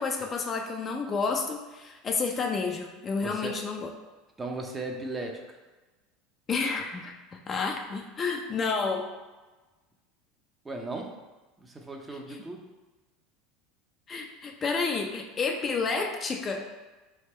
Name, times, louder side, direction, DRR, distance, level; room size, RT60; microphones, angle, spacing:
voice 1, 0.0-3.9 6.5-7.1 7.5-9.1 14.1-16.7, left 4 dB, 35° left, 3 dB, 0.5 m, -30 dB
voice 2, 3.2-3.6 4.4-5.6 10.6-11.1 11.6-12.7, right 2 dB, 20° right, 2 dB, 0.7 m, -36 dB
3.5 x 2.8 x 4.3 m, 1.2 s
hypercardioid pair, 85°, 0 cm